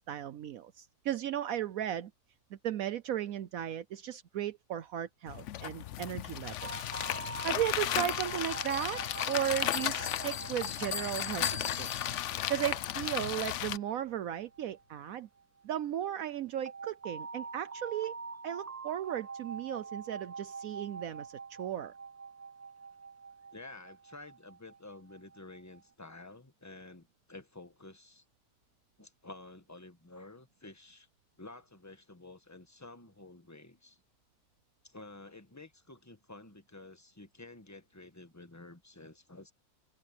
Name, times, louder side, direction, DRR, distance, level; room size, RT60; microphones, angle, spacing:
voice 1, 0.0-2.1 2.5-6.9 7.4-9.0 9.3-11.9 12.5-15.3 15.6-18.1 18.4-21.3 21.6-21.9, right 11 dB, 70° right, 1.1 m, -35 dB
sound 1, 5.3-13.8, left 12 dB, 65° left, 0.8 m, -35 dB
sound 2, 6.6-15.4 16.6-25.8, right 4 dB, 25° right, 0.3 m, -46 dB
Bell, 8.1-12.6, left 7 dB, 90° left, 1.7 m, -41 dB
voice 2, 23.5-28.2 29.0-31.1 31.4-34.0 34.8-39.5, left 2 dB, 10° left, 1.3 m, -51 dB
omnidirectional pair, 1.6 m